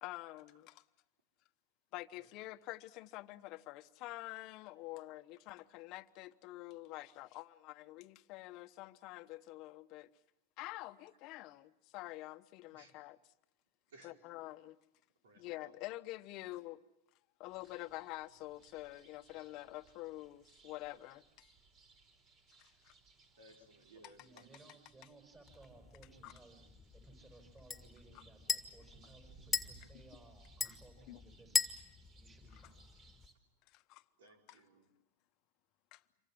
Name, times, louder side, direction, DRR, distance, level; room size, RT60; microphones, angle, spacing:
voice 1, 0.0-0.8 1.9-10.1 10.6-13.2 14.0-14.8 15.4-16.8 17.4-21.5 22.6-22.9 26.2-26.3 30.6-30.8 31.1-31.2 33.7-34.0 34.5-34.6 35.9-36.0, left 18 dB, 50° left, 1.0 m, -47 dB
voice 2, 13.9-14.3 15.2-15.8 23.4-24.5 34.2-34.9, right 2 dB, 80° right, 4.7 m, -61 dB
sound 1, 17.5-33.3, right 4 dB, 40° right, 4.5 m, -65 dB
voice 3, 24.2-31.9 32.2-32.8, right 3 dB, 20° right, 6.1 m, -61 dB
sound 2, 25.5-33.3, left 5 dB, 10° left, 2.0 m, -41 dB
27.5 x 24.5 x 7.7 m
hypercardioid pair, 115°, 0 cm